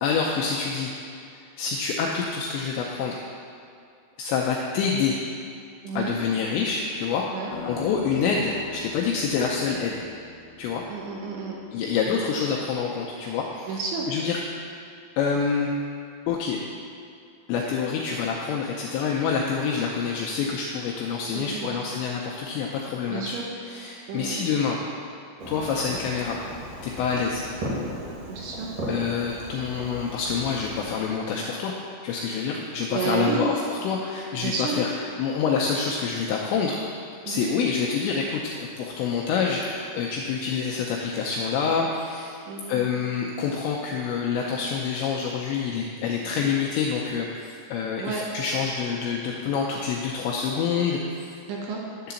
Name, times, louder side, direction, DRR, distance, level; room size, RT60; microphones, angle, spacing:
voice 1, 0.0-0.9 1.3-3.2 4.2-5.2 6.0-7.2 7.6-10.1 10.6-10.8 11.7-13.8 14.1-14.4 15.2-15.7 16.3-16.6 17.5-23.4 23.7-24.8 25.5-26.4 26.8-27.4 28.9-31.7 32.0-34.9 35.2-36.8 37.3-42.4 42.7-51.3, left 6 dB, 85° left, -1 dB, 2.5 m, -27 dB
voice 2, 5.8-6.2 7.3-7.5 10.9-11.6 13.7-14.1 21.3-21.8 23.1-23.5 24.1-24.4 28.3-28.7 32.6-33.5 34.4-34.8 37.3-37.5 42.5-42.8 48.0-48.2 51.5-51.8, right 5 dB, 75° right, -2 dB, 2.8 m, -31 dB
sound 1, 7.5-11.8, left 2 dB, 70° left, 2.2 m, -42 dB
Fireworks, 25.4-30.9, equal, 55° right, 2.6 m, -36 dB
11.0 x 3.8 x 7.0 m, 2.4 s
omnidirectional pair, 5.8 m